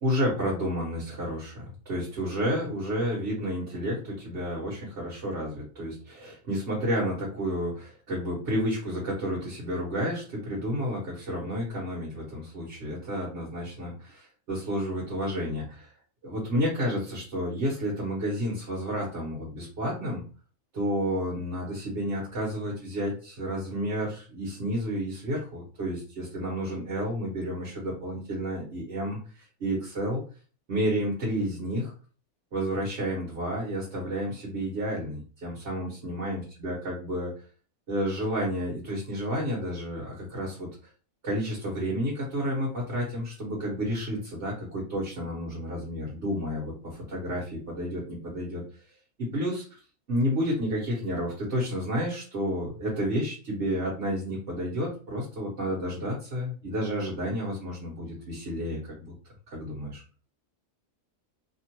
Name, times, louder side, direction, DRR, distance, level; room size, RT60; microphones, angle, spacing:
voice 1, 0.0-15.9 16.2-20.2 20.7-30.2 30.7-31.9 32.5-37.3 37.9-40.7 41.2-48.6 49.2-49.6 50.1-59.1 59.5-60.0, equal, 55° right, -5 dB, 1.3 m, -31 dB
2.9 x 2.4 x 2.9 m, 0.37 s
omnidirectional pair, 1.4 m